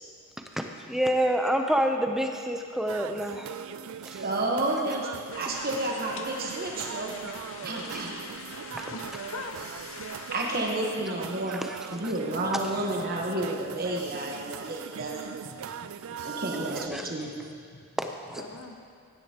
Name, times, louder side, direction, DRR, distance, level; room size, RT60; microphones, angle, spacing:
voice 1, 0.5-3.5 4.0-4.2 7.9-8.0 8.7-8.8 11.5-11.8 16.6-17.1 18.0-18.4, equal, ahead, 4 dB, 0.5 m, -28 dB
sound 1, 2.9-16.9, right 8 dB, 65° right, 0.3 m, -40 dB
voice 2, 4.2-7.1 7.6-8.2 10.3-11.6 11.9-15.3 16.2-17.3, right 1 dB, 40° right, -1 dB, 1.0 m, -31 dB
sound 2, 5.3-10.7, left 6 dB, 60° left, 0.6 m, -44 dB
voice 3, 8.9-9.5 15.4-15.9 17.4-17.9 18.4-18.8, left 3 dB, 80° left, 3 dB, 1.1 m, -43 dB
16.0 x 11.0 x 2.9 m, 2.2 s
head